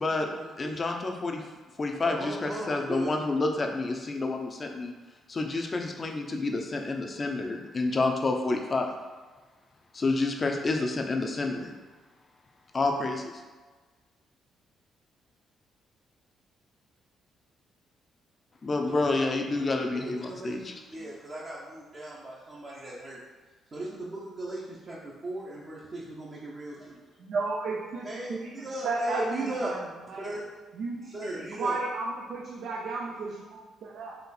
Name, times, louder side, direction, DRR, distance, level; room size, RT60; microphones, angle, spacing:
voice 1, 0.0-0.8 2.0-3.2 18.9-19.4 19.8-19.9 20.3-23.2 23.7-27.0 28.0-29.7 30.1-30.4 31.0-31.8, right 2 dB, 40° right, -7 dB, 0.8 m, -37 dB
voice 2, 0.6-1.4 1.8-4.9 5.3-8.9 9.9-11.7 12.7-13.3 18.6-20.6, left 3 dB, 35° left, 3 dB, 0.6 m, -29 dB
voice 3, 27.2-29.2 29.6-29.8 30.1-30.2 30.8-31.1 31.5-34.2, right 3 dB, 70° right, -2 dB, 0.6 m, -33 dB
4.2 x 2.5 x 4.1 m, 1.3 s
cardioid pair, 90°, 0 cm